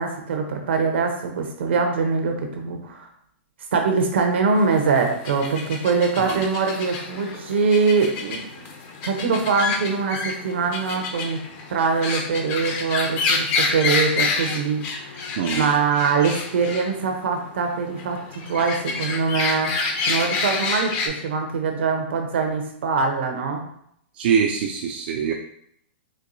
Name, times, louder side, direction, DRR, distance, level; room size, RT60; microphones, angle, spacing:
voice 1, 0.0-3.1 3.7-8.7 9.0-11.4 11.7-23.6, right 5 dB, 70° right, 4 dB, 0.8 m, -23 dB
sound 1, 4.6-21.1, left 4 dB, 35° left, 0.5 m, -28 dB
voice 2, 15.4-15.7 24.1-25.3, right 7 dB, 55° right, 2 dB, 0.4 m, -23 dB
4.5 x 2.3 x 2.6 m, 0.70 s
hypercardioid pair, 140°, 6 cm